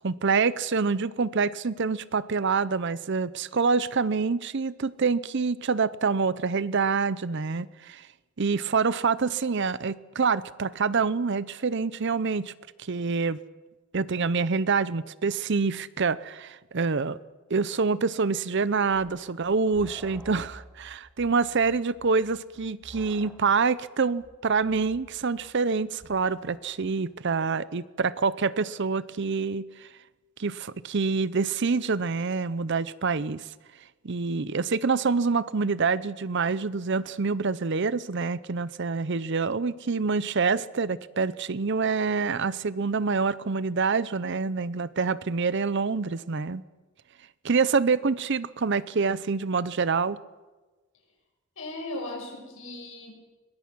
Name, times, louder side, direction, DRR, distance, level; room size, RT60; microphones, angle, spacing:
voice 1, 0.0-8.1 8.4-12.5 12.8-13.4 13.9-17.2 17.5-29.9 30.4-33.5 34.0-46.6 47.4-50.2, right 4 dB, 50° right, 17 dB, 0.6 m, -26 dB
sound 1, 18.9-27.0, equal, 5° right, 2.4 m, -51 dB
voice 2, 51.6-53.1, left 2 dB, 65° left, 2 dB, 6.4 m, -37 dB
22.0 x 20.0 x 6.2 m, 1.2 s
head